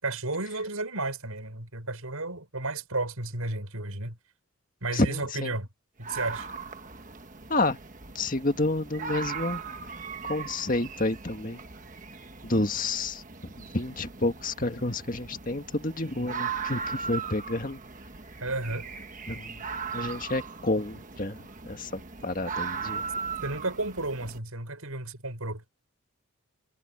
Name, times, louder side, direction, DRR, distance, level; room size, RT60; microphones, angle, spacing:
voice 1, 0.0-4.2 4.8-5.7 6.0-6.5 18.4-18.9 23.4-25.6, right 2 dB, 85° right, 6.8 m, -32 dB
voice 2, 4.9-5.6 7.5-7.8 8.1-9.6 10.2-11.6 12.4-17.8 19.3-19.7 19.9-23.0, left 2 dB, 40° left, 1.9 m, -30 dB
sound 1, 6.0-24.4, right 5 dB, 35° right, 1.4 m, -38 dB
head